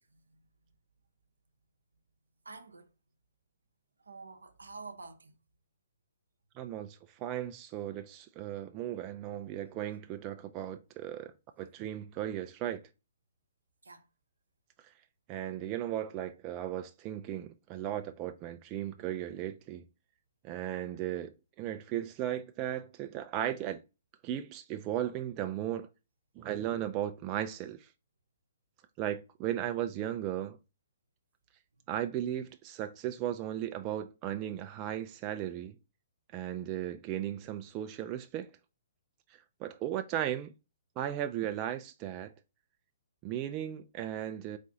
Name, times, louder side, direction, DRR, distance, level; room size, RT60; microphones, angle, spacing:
voice 1, 2.5-2.9 4.1-5.3 13.8-14.0, right 3 dB, 80° right, 0.7 m, -48 dB
voice 2, 6.6-11.3 11.6-12.8 15.3-19.8 20.4-23.8 24.2-25.9 26.4-27.9 29.0-30.6 31.9-35.8 36.3-38.5 39.6-40.5 41.0-42.3 43.2-44.6, right 11 dB, 30° right, 0.3 m, -36 dB
4.1 x 2.5 x 3.7 m
figure-of-eight pair, 125°, 0 cm